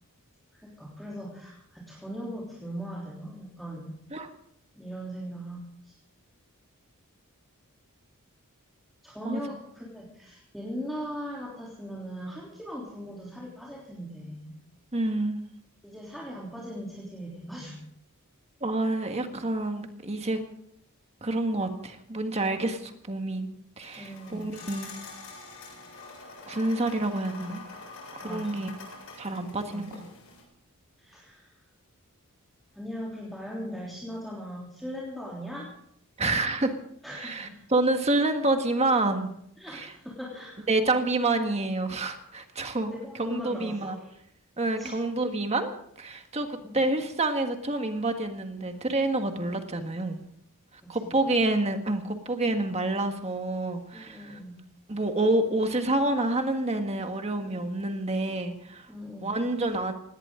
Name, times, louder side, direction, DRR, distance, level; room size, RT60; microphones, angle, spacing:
voice 1, 0.5-3.9 4.7-6.0 9.0-14.6 15.8-17.8 24.0-24.5 28.2-28.5 29.7-29.9 31.0-31.6 32.7-35.7 37.0-37.6 39.6-40.7 42.9-44.1 44.8-45.0 46.6-46.8 50.8-51.1 53.9-54.6 57.4-57.7 58.9-59.3, equal, ahead, -6 dB, 3.3 m, -39 dB
voice 2, 14.9-15.4 18.6-20.4 21.2-23.5 23.8-24.9 26.5-27.6 28.1-28.7 29.2-30.0 36.2-36.7 37.1-39.3 39.7-39.9 40.7-42.9 43.2-44.0 44.6-45.7 46.0-50.2 50.9-54.4 54.9-58.9 59.2-59.9, right 2 dB, 30° right, 6 dB, 1.6 m, -28 dB
sound 1, 23.8-30.4, left 3 dB, 65° left, 8.0 m, -45 dB
19.0 x 17.5 x 3.8 m, 0.71 s
head